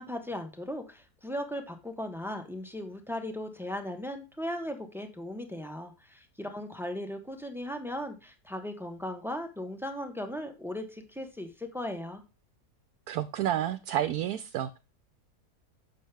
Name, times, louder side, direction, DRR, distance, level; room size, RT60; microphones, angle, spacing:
voice 1, 0.0-12.2, left 1 dB, ahead, 0.9 m, -37 dB
voice 2, 13.1-14.8, right 11 dB, 75° right, 1.1 m, -30 dB
7.4 x 6.2 x 3.4 m
omnidirectional pair, 1.6 m